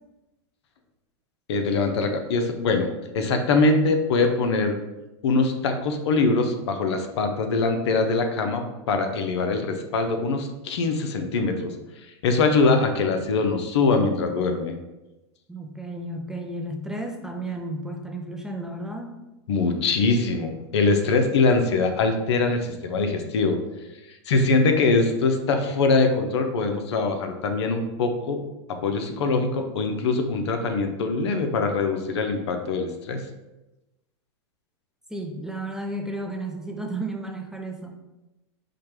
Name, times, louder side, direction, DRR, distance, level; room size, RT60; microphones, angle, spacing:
voice 1, 1.5-4.8 5.2-11.7 12.2-14.8 19.5-23.6 24.3-28.4 28.8-33.2, left 3 dB, 75° left, 6 dB, 0.6 m, -23 dB
voice 2, 15.5-19.2 35.1-37.9, right 1 dB, 5° right, 2 dB, 0.4 m, -33 dB
4.8 x 2.2 x 3.0 m, 1.0 s
hypercardioid pair, 110°, 14 cm